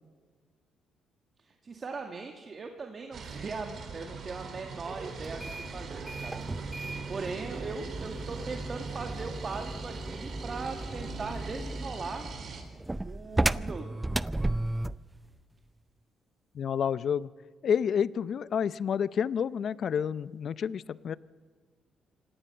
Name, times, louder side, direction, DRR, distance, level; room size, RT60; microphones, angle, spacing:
voice 1, 1.5-12.2 13.0-14.0, right 4 dB, 40° right, 4 dB, 1.9 m, -40 dB
sound 1, 3.1-12.6, right 4 dB, 55° right, 3.7 m, -41 dB
sound 2, 5.2-15.1, right 2 dB, 15° right, 0.5 m, -35 dB
voice 2, 16.5-17.3 17.6-21.2, left 7 dB, 60° left, 18 dB, 0.6 m, -29 dB
25.5 x 18.0 x 6.8 m, 1.5 s
cardioid pair, 90°, 0 cm